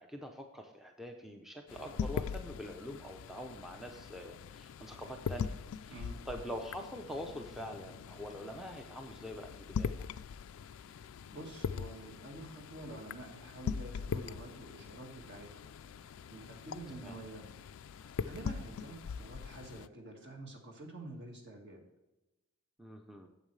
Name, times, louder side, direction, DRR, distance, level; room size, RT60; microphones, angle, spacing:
voice 1, 0.0-10.1 16.9-17.2 22.8-23.3, equal, ahead, 3 dB, 0.5 m, -45 dB
sound 1, 1.7-19.9, left 6 dB, 70° left, 0.3 m, -42 dB
voice 2, 5.9-6.2 11.0-17.5 18.0-21.8, right 2 dB, 55° right, 1 dB, 1.8 m, -48 dB
9.0 x 7.3 x 3.2 m, 1.0 s
head